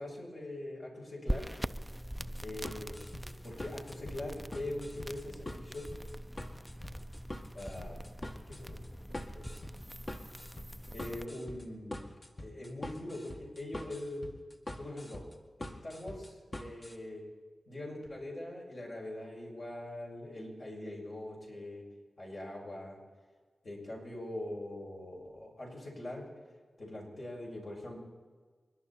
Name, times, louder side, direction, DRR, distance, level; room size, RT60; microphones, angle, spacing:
voice 1, 0.0-1.5 2.4-5.9 7.5-8.1 8.5-8.8 9.3-9.6 10.9-12.1 12.4-14.2 14.8-15.2 15.6-17.2 17.7-21.8 22.2-23.0 23.6-26.2 26.8-28.0, left 1 dB, 60° left, -3 dB, 6.5 m, -42 dB
sound 1, 1.3-11.2, equal, 5° right, 0.6 m, -42 dB
sound 2, 2.2-17.0, left 1 dB, 45° left, 2.0 m, -45 dB
29.5 x 11.0 x 4.3 m, 1.5 s
cardioid pair, 40°, 0 cm